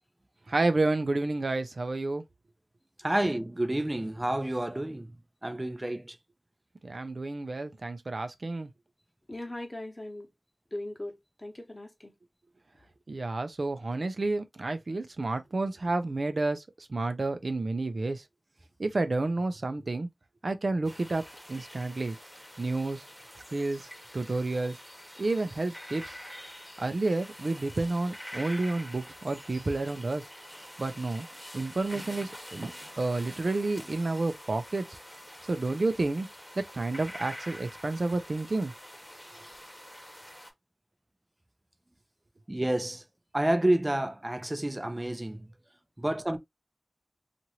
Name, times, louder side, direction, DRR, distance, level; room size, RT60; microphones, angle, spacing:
voice 1, 0.5-2.2 6.8-8.7 13.1-18.2 18.8-20.1 20.4-21.2 21.5-22.2 22.6-23.0 23.5-24.8 25.2-26.1 26.8-30.3 30.8-31.3 31.5-35.0 35.5-36.3 36.6-38.7, right 2 dB, 80° right, 0.5 m, -30 dB
voice 2, 3.0-5.1 5.4-6.2 42.5-43.0 43.3-45.5 46.0-46.4, right 1 dB, 30° right, 0.5 m, -29 dB
voice 3, 9.3-10.3 10.7-12.1, left 1 dB, 35° left, 0.9 m, -39 dB
sound 1, 20.8-40.5, equal, 10° left, 1.0 m, -46 dB
2.9 x 2.5 x 2.8 m
wide cardioid pair, 50°, 0 cm